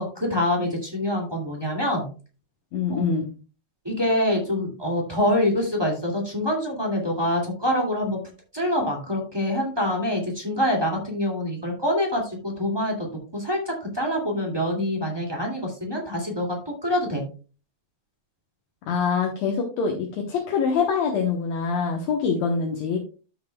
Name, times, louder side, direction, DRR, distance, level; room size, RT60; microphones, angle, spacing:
voice 1, 0.0-2.1 2.9-3.0 3.8-8.2 8.5-17.2, left 1 dB, 10° right, -1 dB, 2.0 m, -25 dB
voice 2, 2.7-3.3 18.9-23.0, left 5 dB, 70° left, 1 dB, 2.3 m, -24 dB
13.0 x 6.6 x 2.3 m, 0.36 s
omnidirectional pair, 3.3 m